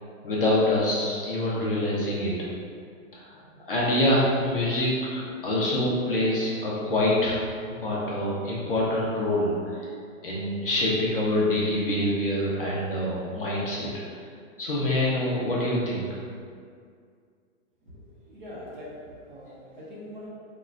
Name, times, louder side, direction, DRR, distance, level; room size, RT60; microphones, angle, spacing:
voice 1, 0.2-2.5 3.1-3.4 3.7-7.4 7.8-9.9 10.2-13.9 14.6-16.1, left 1 dB, 45° left, -6 dB, 0.4 m, -25 dB
voice 2, 17.9-20.3, left 1 dB, 35° right, -7 dB, 0.6 m, -43 dB
3.7 x 2.1 x 2.3 m, 2.2 s
hypercardioid pair, 175°, 41 cm